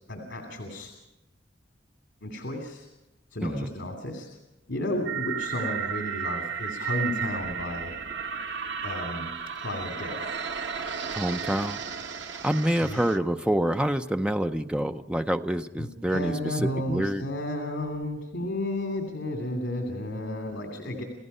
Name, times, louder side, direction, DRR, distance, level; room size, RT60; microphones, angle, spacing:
voice 1, 0.1-0.9 2.2-2.9 3.3-4.4 4.7-7.9 8.8-9.3 9.6-10.3 12.8-13.1 15.8-21.0, left 1 dB, 75° left, 3 dB, 2.7 m, -32 dB
sound 1, 5.0-13.2, right 7 dB, 80° right, 1.2 m, -33 dB
voice 2, 11.1-11.8 12.4-17.2, right 1 dB, 5° right, 7 dB, 0.6 m, -27 dB
29.0 x 16.5 x 5.6 m, 0.97 s
head